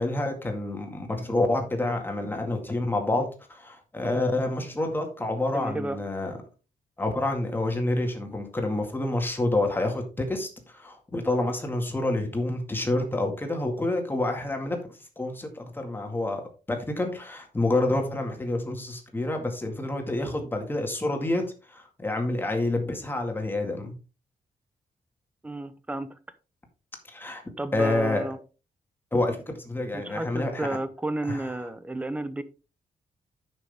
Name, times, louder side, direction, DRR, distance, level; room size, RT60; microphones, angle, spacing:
voice 1, 0.0-6.4 7.0-14.8 15.2-16.4 16.7-23.9 27.1-27.4 27.7-28.3 29.1-30.8 31.3-31.4, left 2 dB, 15° left, 3 dB, 2.0 m, -28 dB
voice 2, 5.5-6.0 25.4-26.2 27.6-28.4 29.9-32.4, right 2 dB, 10° right, 12 dB, 0.7 m, -32 dB
10.0 x 6.3 x 3.6 m, 0.33 s
wide cardioid pair, 160°, 15 cm